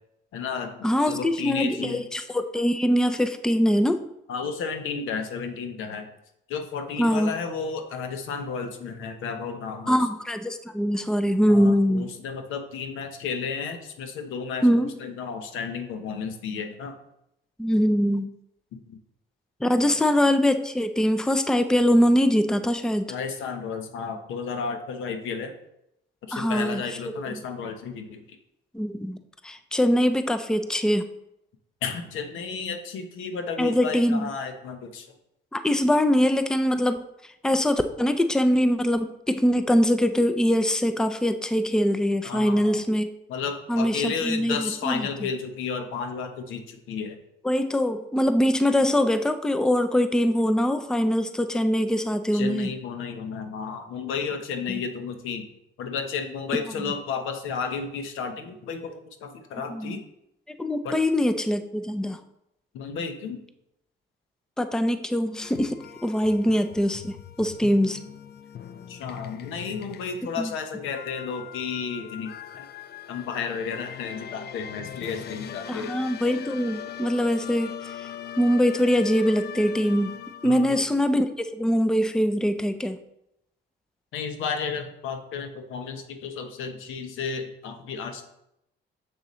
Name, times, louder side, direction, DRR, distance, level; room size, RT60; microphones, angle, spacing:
voice 1, 0.3-2.1 4.3-6.1 6.5-10.1 11.5-17.0 18.7-19.0 19.8-19.9 23.1-25.5 26.2-28.4 31.8-35.1 42.2-42.9 43.3-47.2 52.3-55.5 55.8-60.0 60.8-61.0 62.7-63.4 68.9-72.7 73.1-75.9 80.4-80.8 84.1-88.2, left 5 dB, 90° left, 6 dB, 0.9 m, -32 dB
voice 2, 0.8-4.0 7.0-7.3 9.9-12.1 14.6-14.9 17.6-18.3 19.6-23.1 26.3-26.8 28.7-29.2 29.4-31.1 33.6-34.3 35.5-37.0 37.4-43.1 43.7-45.1 47.4-52.7 54.7-54.8 59.7-60.0 60.5-62.2 64.6-68.0 70.4-70.5 75.7-77.8 78.4-80.1 80.4-83.0, equal, 5° left, 9 dB, 0.5 m, -23 dB
sound 1, 65.4-80.8, left 10 dB, 55° left, 0.5 m, -41 dB
6.8 x 6.6 x 3.1 m, 0.82 s
cardioid pair, 90°, 20 cm